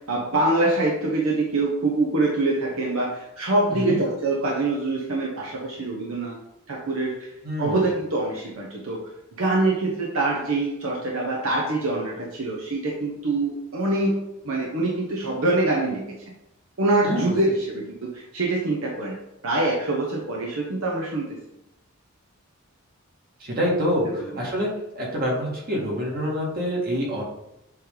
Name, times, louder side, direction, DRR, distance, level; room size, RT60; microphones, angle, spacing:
voice 1, 0.1-6.4 6.7-7.1 7.6-9.0 9.4-14.2 14.4-16.0 16.8-19.1 19.4-21.2 24.0-24.3, right 2 dB, 70° right, -2 dB, 1.0 m, -24 dB
voice 2, 7.4-7.8 17.0-17.3 23.4-24.1 24.4-24.7 25.0-27.2, equal, 45° right, -4 dB, 2.0 m, -26 dB
7.5 x 3.3 x 3.8 m, 0.88 s
head